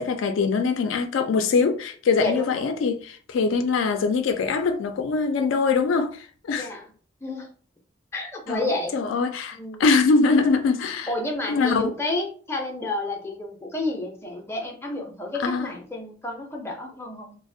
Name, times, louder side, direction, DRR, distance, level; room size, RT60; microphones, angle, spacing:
voice 1, 0.0-6.7 8.5-11.1 11.5-11.8 15.4-15.7, left 4 dB, 85° left, 0.3 m, -23 dB
voice 2, 2.2-2.7 6.5-6.9 7.2-7.5 8.1-9.0 9.6-9.8 11.1-17.4, left 2 dB, 15° left, 0.4 m, -30 dB
2.3 x 2.0 x 2.6 m
head